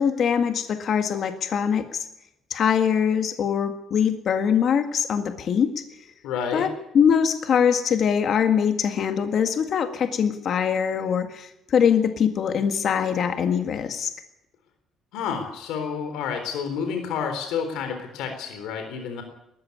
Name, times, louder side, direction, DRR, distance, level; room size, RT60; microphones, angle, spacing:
voice 1, 0.0-2.1 2.5-5.7 6.5-14.1, left 7 dB, 50° left, 7 dB, 1.8 m, -23 dB
voice 2, 6.2-6.7 15.1-19.2, left 6 dB, 90° left, 6 dB, 3.8 m, -29 dB
19.5 x 14.5 x 9.7 m, 0.83 s
cardioid pair, 140°, 0 cm